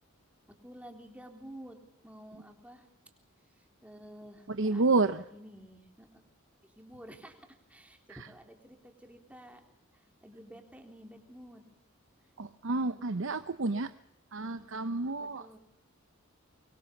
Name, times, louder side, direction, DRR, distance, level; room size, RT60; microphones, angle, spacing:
voice 1, 0.5-1.8 2.0-2.9 3.6-6.1 6.6-9.6 9.9-11.6 15.2-15.6, equal, 5° right, 3.7 m, -51 dB
voice 2, 4.5-5.2 8.1-8.3 12.4-13.9 14.3-15.6, right 3 dB, 65° right, 0.8 m, -30 dB
24.0 x 23.0 x 7.2 m
head